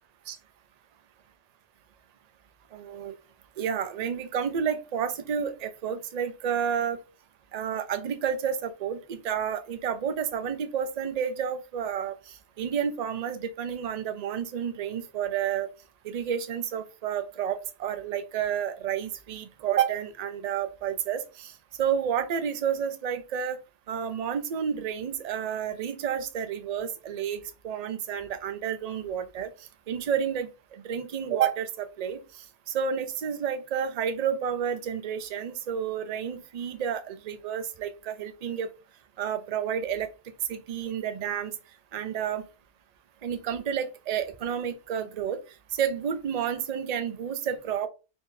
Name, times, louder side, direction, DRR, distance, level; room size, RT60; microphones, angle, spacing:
voice 1, 2.7-3.1 3.6-7.0 7.5-15.7 16.0-23.6 23.9-29.5 29.9-38.7 39.2-40.1 40.5-41.5 41.9-42.5 43.2-45.4 45.7-47.9, right 8 dB, 50° right, 0.5 m, -30 dB
4.3 x 3.5 x 2.6 m
omnidirectional pair, 1.2 m